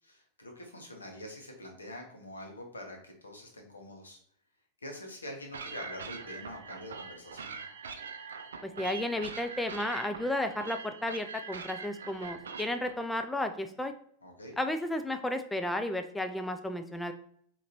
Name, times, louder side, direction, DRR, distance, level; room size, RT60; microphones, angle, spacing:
voice 1, 0.0-4.2 4.8-7.6 14.2-14.5, left 1 dB, 75° left, 2 dB, 1.1 m, -45 dB
sound 1, 5.5-12.9, right 5 dB, 65° right, 0.4 m, -43 dB
voice 2, 8.6-13.9 14.6-17.1, left 1 dB, 5° left, 7 dB, 0.3 m, -33 dB
4.9 x 2.9 x 2.7 m, 0.62 s
figure-of-eight pair, 90°, 0 cm